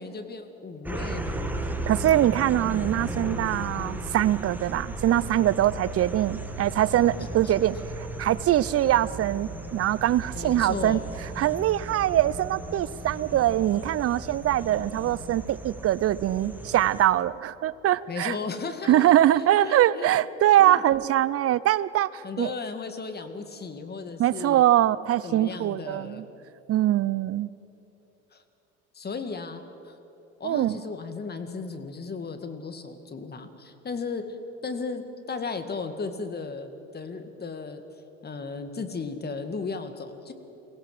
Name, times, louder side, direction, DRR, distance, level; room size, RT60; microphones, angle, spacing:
voice 1, 0.0-1.5 7.4-7.5 10.3-11.1 18.1-20.1 20.6-20.8 22.2-24.6 25.2-26.2 28.3-28.4 28.9-30.0 30.4-34.4 34.6-35.0 35.3-37.8 38.2-40.3, left 4 dB, 25° left, 8 dB, 2.1 m, -35 dB
sound 1, 0.8-17.0, right 2 dB, 5° right, 1.9 m, -36 dB
voice 2, 1.9-7.8 8.2-11.0 11.4-18.3 18.9-22.5 24.2-26.2 26.7-27.5 30.4-30.8, right 13 dB, 40° right, 18 dB, 0.7 m, -23 dB
23.0 x 17.0 x 7.9 m, 3.0 s
hypercardioid pair, 85°, 35 cm